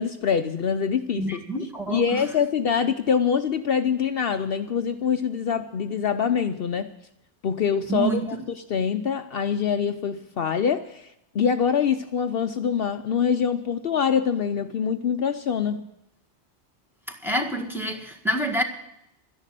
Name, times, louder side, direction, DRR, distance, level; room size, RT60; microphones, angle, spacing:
voice 1, 0.0-1.4 1.9-6.9 7.4-15.8, left 7 dB, 60° left, 8 dB, 0.8 m, -25 dB
voice 2, 1.2-2.0 7.9-8.2 17.1-18.6, right 1 dB, ahead, 1 dB, 1.6 m, -27 dB
12.5 x 10.5 x 7.5 m, 0.83 s
omnidirectional pair, 1.1 m